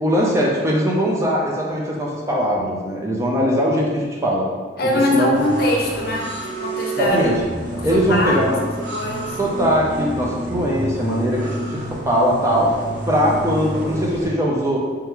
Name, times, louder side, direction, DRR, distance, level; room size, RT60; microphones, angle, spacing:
voice 1, 0.0-4.4 5.1-5.4 6.9-7.4 7.8-8.6 9.4-12.7 13.1-14.8, equal, 15° right, -3 dB, 0.5 m, -20 dB
voice 2, 4.8-6.3 6.6-7.3 7.8-8.4 8.9-9.3, left 1 dB, 50° left, 0 dB, 0.5 m, -22 dB
sound 1, 5.3-14.2, right 2 dB, 40° right, 0.8 m, -29 dB
3.4 x 3.0 x 3.5 m, 1.5 s
head